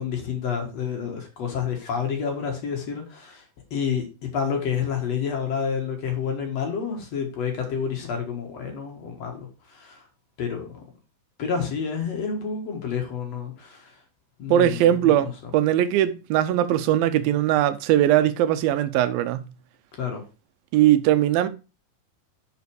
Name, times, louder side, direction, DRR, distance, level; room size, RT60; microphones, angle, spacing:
voice 1, 0.0-3.4 3.7-10.0 10.4-10.8 11.4-14.0 14.4-15.1 20.0-20.2, left 6 dB, 55° left, 2.4 m, -29 dB
voice 2, 14.5-19.4 20.7-21.5, right 12 dB, 85° right, 2.5 m, -20 dB
6.7 x 5.9 x 4.7 m
omnidirectional pair, 4.0 m